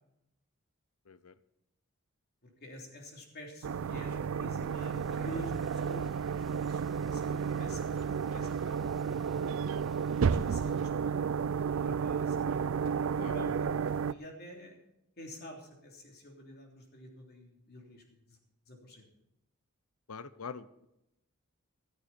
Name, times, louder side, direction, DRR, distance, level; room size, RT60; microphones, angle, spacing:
voice 1, 2.4-6.8 7.1-9.7 10.2-13.0 13.2-14.8 15.2-18.4 18.7-19.0, equal, 45° left, 1 dB, 3.3 m, -48 dB
sound 1, 3.6-14.1, right 6 dB, 60° right, 0.4 m, -32 dB
sound 2, 4.6-10.9, equal, ahead, 0.5 m, -53 dB
voice 2, 20.1-20.9, left 5 dB, 75° left, 15 dB, 0.8 m, -45 dB
14.5 x 13.5 x 4.3 m, 0.86 s
head